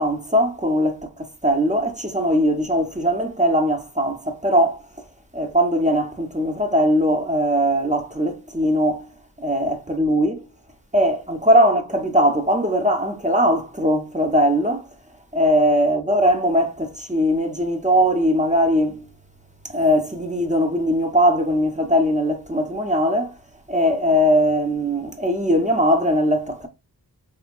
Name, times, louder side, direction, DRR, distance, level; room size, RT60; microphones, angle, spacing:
voice 1, 0.0-4.8 5.3-9.1 9.4-10.5 10.9-14.9 15.3-19.1 19.7-23.3 23.7-26.7, equal, 15° right, 0.7 m, -20 dB
3.5 x 2.9 x 2.2 m
wide cardioid pair, 45°, 44 cm